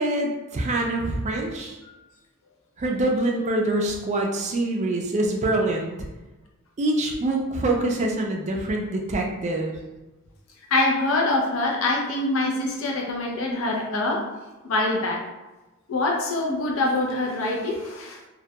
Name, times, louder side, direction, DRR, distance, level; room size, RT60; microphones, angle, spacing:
voice 1, 0.0-1.8 2.8-6.1 6.8-9.7, right 2 dB, 30° right, 1 dB, 0.4 m, -25 dB
voice 2, 10.7-14.3 14.6-15.2 15.9-18.2, left 2 dB, 65° left, -1 dB, 0.5 m, -24 dB
2.2 x 2.1 x 2.7 m, 1.1 s
head